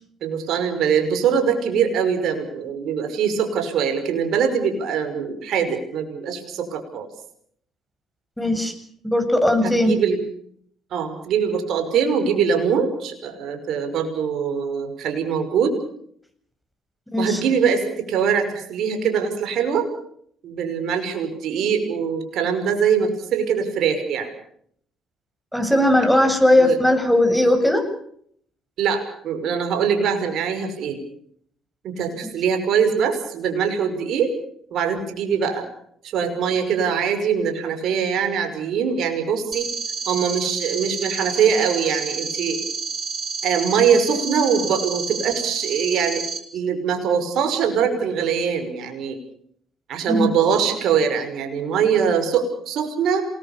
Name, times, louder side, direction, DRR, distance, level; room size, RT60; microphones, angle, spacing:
voice 1, 0.2-7.1 9.6-10.2 10.9-15.7 17.2-19.9 20.4-24.3 26.5-26.8 28.8-31.0 31.8-34.3 34.7-35.7 36.0-39.7 40.1-42.6 43.4-46.2 46.5-49.2 49.9-53.3, right 7 dB, 60° right, 6 dB, 5.6 m, -22 dB
voice 2, 8.4-8.7 9.0-10.0 17.1-17.4 25.5-27.8 50.1-50.3, left 1 dB, 5° left, 6 dB, 7.8 m, -18 dB
sound 1, 39.5-46.4, right 5 dB, 40° right, 5.6 m, -29 dB
28.0 x 20.5 x 6.9 m, 0.65 s
hypercardioid pair, 55°, 0 cm